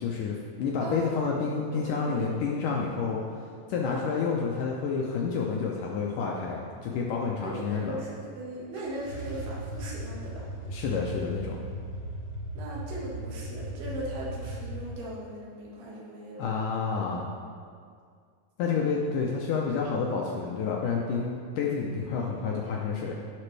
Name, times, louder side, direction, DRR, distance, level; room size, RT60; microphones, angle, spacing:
voice 1, 0.0-3.4 3.7-8.0 10.7-11.6 16.4-17.3 18.6-23.2, left 5 dB, 85° left, -2 dB, 1.8 m, -29 dB
voice 2, 0.8-2.4 3.9-4.3 7.4-10.5 12.6-16.5 18.6-18.9, right 1 dB, 75° right, -4 dB, 3.6 m, -39 dB
sound 1, 8.7-14.9, equal, 50° left, 1.7 m, -37 dB
16.5 x 6.0 x 3.3 m, 2.1 s
omnidirectional pair, 4.6 m